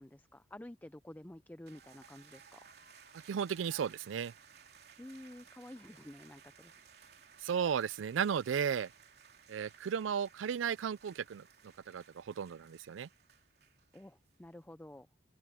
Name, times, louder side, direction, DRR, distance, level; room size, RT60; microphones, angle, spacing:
voice 1, 0.0-2.7 5.0-6.7 13.9-15.1, left 1 dB, 10° left, 0.4 m, -51 dB
sound 1, 1.7-14.3, right 7 dB, 55° right, 3.1 m, -59 dB
voice 2, 3.2-4.3 7.4-8.9 9.5-13.1, right 7 dB, 85° right, 0.4 m, -35 dB
open air
head